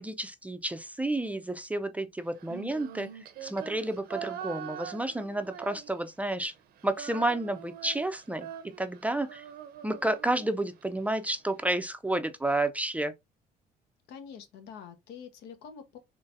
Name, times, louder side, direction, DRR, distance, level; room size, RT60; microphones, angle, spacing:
voice 1, 0.0-3.1 3.4-6.5 6.8-9.4 9.8-13.1, right 1 dB, 10° right, 0.4 m, -31 dB
Female singing, 2.4-6.3 6.5-10.8, right 9 dB, 65° right, 0.6 m, -43 dB
voice 2, 14.1-16.0, left 7 dB, 85° left, 0.9 m, -46 dB
3.9 x 3.1 x 2.5 m
cardioid pair, 110°, 17 cm